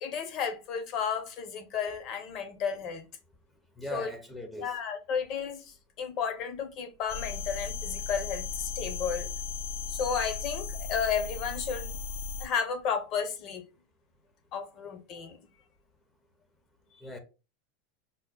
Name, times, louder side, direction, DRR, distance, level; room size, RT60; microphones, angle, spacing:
voice 1, 0.0-3.1 3.9-4.1 4.6-9.3 9.9-12.0 12.4-13.6 14.5-15.4, left 6 dB, 45° left, 0.7 m, -33 dB
voice 2, 3.8-4.7 17.0-17.2, left 1 dB, 10° left, 0.4 m, -39 dB
sound 1, 7.1-12.5, left 5 dB, 75° left, 0.4 m, -36 dB
5.2 x 2.1 x 2.2 m
supercardioid pair, 145°, 0 cm